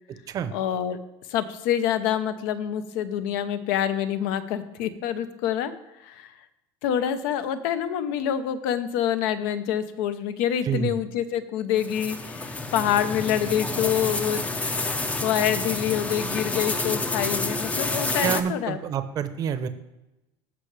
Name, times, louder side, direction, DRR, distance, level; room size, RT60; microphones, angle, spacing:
voice 1, 0.5-1.0 1.3-5.7 6.0-6.3 6.8-14.5 14.8-18.8, left 10 dB, 75° left, 11 dB, 0.9 m, -26 dB
voice 2, 10.6-11.0 18.2-19.7, right 8 dB, 35° right, 11 dB, 0.7 m, -27 dB
sound 1, 11.8-18.4, left 2 dB, 10° left, 0.5 m, -29 dB
16.0 x 5.5 x 3.3 m, 0.96 s
cardioid pair, 155°, 11 cm